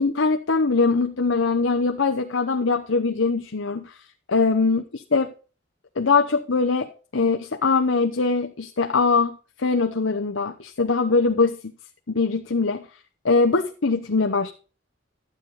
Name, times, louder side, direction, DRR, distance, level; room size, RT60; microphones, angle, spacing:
voice 1, 0.0-4.0 4.3-5.3 6.0-11.6 12.1-12.9 13.2-14.5, left 4 dB, 85° left, 5 dB, 0.9 m, -22 dB
12.5 x 8.7 x 4.0 m, 0.36 s
head